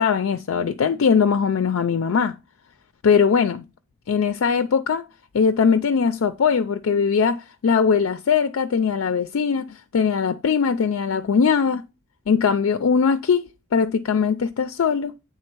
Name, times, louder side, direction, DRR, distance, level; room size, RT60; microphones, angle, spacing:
voice 1, 0.0-2.3 3.0-3.7 4.1-5.0 5.3-11.8 12.3-15.1, left 6 dB, 70° left, 0.4 m, -20 dB
8.7 x 3.6 x 4.5 m
head